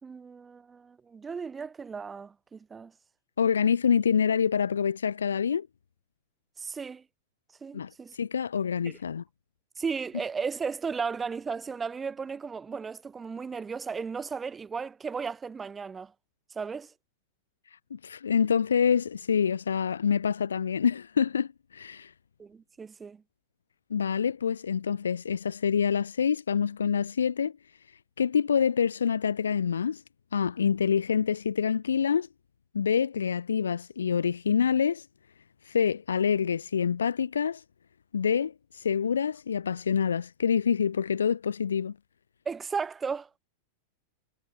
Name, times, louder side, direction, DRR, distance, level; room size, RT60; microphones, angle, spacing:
voice 1, 0.0-2.9 6.6-7.0 7.6-8.2 8.8-9.0 9.8-16.1 16.5-16.9 22.4-23.2 42.5-43.3, right 5 dB, 15° right, 4.0 m, -35 dB
voice 2, 3.4-5.7 7.7-9.2 17.9-22.1 23.9-27.5 28.2-30.0 30.3-32.3 32.7-35.1 35.7-37.6 38.1-41.9, left 7 dB, 70° left, 0.7 m, -26 dB
figure-of-eight pair, 90°, 0 cm